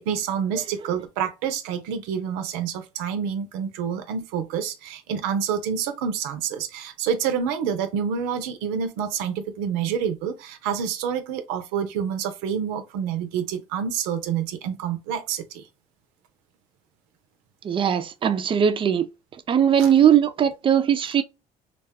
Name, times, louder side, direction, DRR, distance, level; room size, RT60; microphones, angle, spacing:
voice 1, 0.0-15.7 19.8-19.9, right 7 dB, 85° right, 0.5 m, -28 dB
voice 2, 17.6-19.1 19.5-21.2, right 9 dB, 35° right, 0.5 m, -19 dB
2.3 x 2.2 x 3.4 m
supercardioid pair, 85°, 15 cm